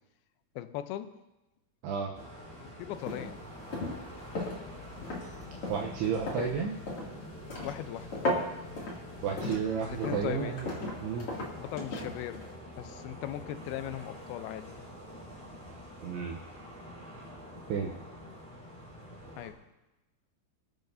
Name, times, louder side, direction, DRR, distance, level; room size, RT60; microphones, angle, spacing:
voice 1, 0.6-1.2 2.6-3.5 6.4-6.7 7.6-8.2 9.8-10.6 11.5-12.5 12.8-14.8 19.4-19.6, left 12 dB, 80° left, 9 dB, 2.3 m, -39 dB
voice 2, 1.8-2.2 5.7-6.7 9.2-10.7 11.0-11.3 16.0-16.4 17.7-17.9, right 6 dB, 75° right, 0 dB, 2.7 m, -32 dB
Seedy Motel, 2.1-19.5, equal, ahead, 3.7 m, -47 dB
sound 1, 2.9-12.5, left 1 dB, 40° left, 2.7 m, -37 dB
sound 2, 4.3-10.5, left 6 dB, 55° left, 3.8 m, -52 dB
25.5 x 9.1 x 2.7 m, 1.0 s
omnidirectional pair, 5.1 m